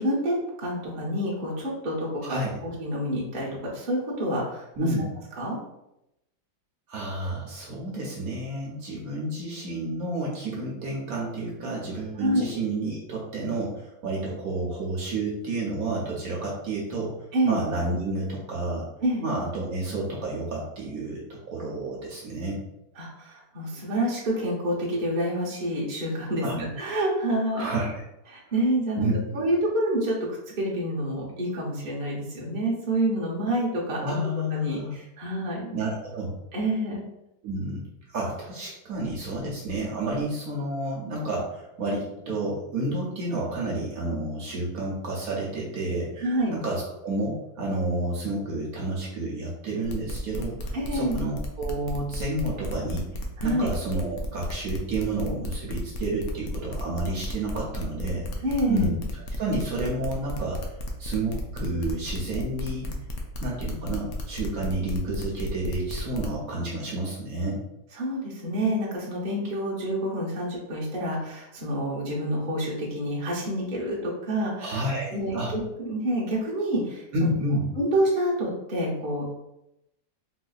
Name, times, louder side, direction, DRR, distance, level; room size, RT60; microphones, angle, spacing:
voice 1, 0.0-4.7 5.4-5.6 12.2-12.4 17.3-17.6 19.0-19.2 23.0-27.7 28.3-29.1 29.3-30.3 30.6-34.0 34.5-35.7 36.5-37.0 46.2-46.5 50.7-51.2 53.4-53.7 58.4-58.9 67.9-74.8 75.1-77.3 77.8-79.2, right 1 dB, 40° right, -4 dB, 0.7 m, -28 dB
voice 2, 2.2-2.5 4.8-5.1 6.9-17.1 17.4-18.9 19.2-22.6 26.4-26.6 27.5-28.0 29.0-29.4 34.0-34.9 35.7-36.3 37.4-53.1 53.4-58.3 58.7-60.6 61.0-62.9 63.4-67.6 74.6-75.5 77.1-77.6, right 2 dB, 65° right, -4 dB, 1.0 m, -30 dB
sound 1, 49.8-66.3, left 1 dB, 70° left, 0.9 m, -35 dB
3.8 x 2.6 x 2.3 m, 0.87 s
omnidirectional pair, 1.8 m